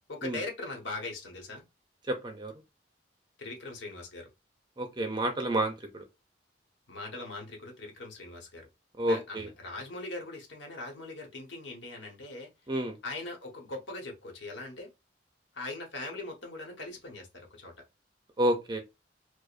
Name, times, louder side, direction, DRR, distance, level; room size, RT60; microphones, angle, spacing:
voice 1, 0.1-1.6 3.4-4.3 6.9-8.7 9.0-12.5 13.0-14.9 15.5-17.7, left 2 dB, 80° left, 1.1 m, -40 dB
voice 2, 2.1-2.5 4.8-6.0 9.0-9.5 12.7-12.9 18.4-18.8, right 1 dB, 25° right, 0.5 m, -29 dB
4.8 x 2.1 x 2.5 m
head